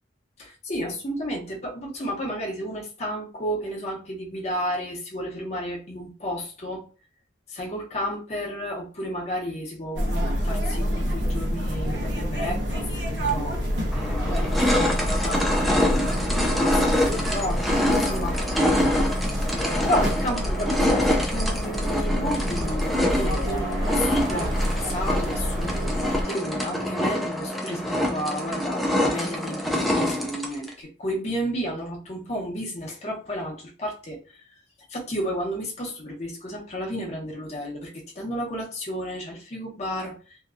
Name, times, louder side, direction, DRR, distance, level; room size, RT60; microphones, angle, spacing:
voice 1, 0.4-6.9 7.5-13.5 13.9-18.3 19.5-34.2 34.9-40.4, equal, 40° left, -1 dB, 0.8 m, -32 dB
sound 1, 9.9-26.2, equal, 80° right, 0.8 m, -27 dB
sound 2, 13.3-13.4 13.9-30.7, left 1 dB, ahead, 0.4 m, -26 dB
2.8 x 2.3 x 2.4 m, 0.35 s
head